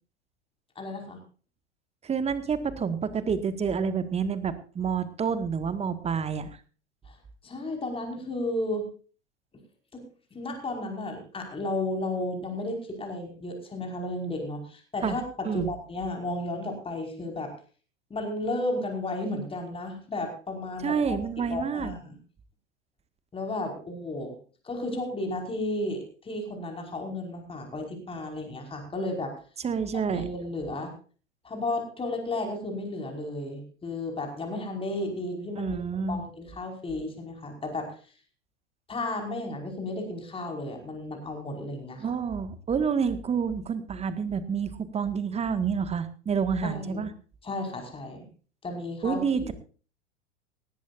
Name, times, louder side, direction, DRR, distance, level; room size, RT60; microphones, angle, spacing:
voice 1, 0.8-1.2 7.1-7.2 7.4-8.9 9.9-10.0 10.3-17.5 18.1-22.2 23.3-24.3 24.6-29.3 29.9-30.9 31.4-35.8 36.1-38.0 38.9-42.1 46.6-47.1 47.4-48.3 48.6-49.5, left 2 dB, 15° left, 3 dB, 5.2 m, -33 dB
voice 2, 2.0-6.5 15.0-15.2 15.4-15.7 20.8-21.9 29.6-30.2 35.6-36.2 42.0-47.1 49.0-49.5, right 6 dB, 20° right, 12 dB, 1.8 m, -28 dB
18.5 x 15.5 x 2.6 m, 0.39 s
figure-of-eight pair, 95°, 35 cm